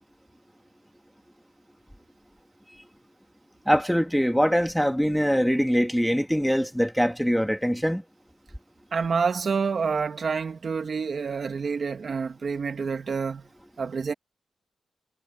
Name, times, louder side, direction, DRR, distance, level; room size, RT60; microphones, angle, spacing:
voice 1, 3.7-8.0, equal, ahead, 1.9 m, -23 dB
voice 2, 8.9-13.4 13.8-14.1, right 5 dB, 50° right, 2.3 m, -28 dB
wide cardioid pair, 105°, 0 cm